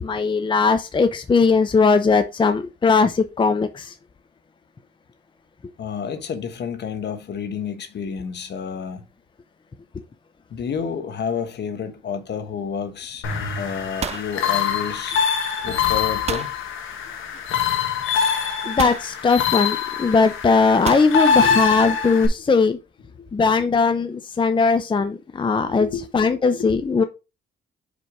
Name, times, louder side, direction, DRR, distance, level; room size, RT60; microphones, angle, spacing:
voice 1, 0.0-3.9 18.6-22.8 23.3-25.9 26.1-27.0, left 4 dB, 25° left, 0.6 m, -19 dB
voice 2, 5.8-9.0 10.5-15.2 15.6-16.5 21.3-21.6 22.1-22.2 23.2-23.3 25.7-26.0 26.5-26.8, left 6 dB, 60° left, 1.2 m, -30 dB
sound 1, 13.0-13.4 13.7-15.2 16.3-16.6 17.7-17.8 18.8-19.1 20.9-21.2, right 7 dB, 35° right, 0.4 m, -30 dB
sound 2, 13.2-22.3, left 7 dB, 80° left, 1.4 m, -24 dB
5.2 x 4.5 x 4.7 m
cardioid pair, 90°, 20 cm